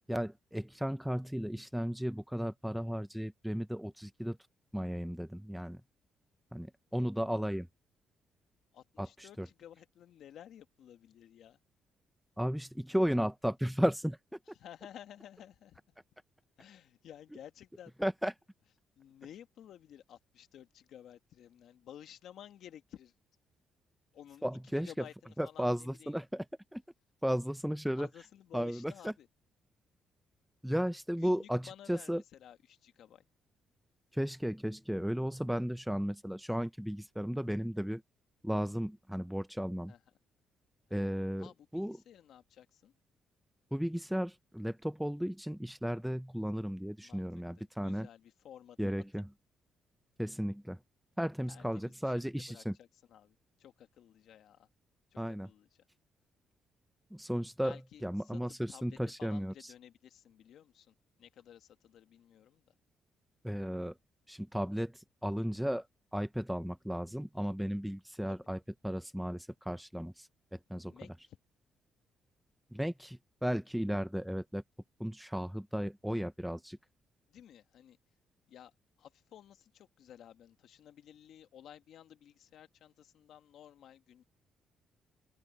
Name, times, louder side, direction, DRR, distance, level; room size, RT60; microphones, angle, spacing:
voice 1, 0.1-4.4 4.7-5.8 6.5-7.7 9.0-9.1 9.4-9.5 12.4-14.2 18.0-18.3 24.4-24.9 25.4-26.4 26.7-26.8 27.2-28.1 28.5-29.1 30.6-32.2 34.1-38.0 38.4-39.9 40.9-42.0 43.7-48.1 48.8-49.2 50.2-50.8 51.2-52.7 55.2-55.5 57.1-58.5 58.8-59.5 63.4-63.9 64.3-65.8 66.1-70.3 70.5-70.9 72.7-74.6 75.0-76.8, equal, ahead, 0.8 m, -34 dB
voice 2, 8.7-11.6 14.5-15.8 16.6-17.9 19.0-23.1 24.1-26.1 27.9-29.3 31.2-33.2 39.9-40.0 40.9-41.1 41.4-42.9 47.0-47.2 47.6-49.2 51.5-54.7 55.1-55.9 57.6-62.7 68.3-68.4 70.9-71.4 77.3-78.0 78.5-78.7 79.0-84.2, left 10 dB, 75° left, 1.7 m, -54 dB
open air
cardioid pair, 90°, 0 cm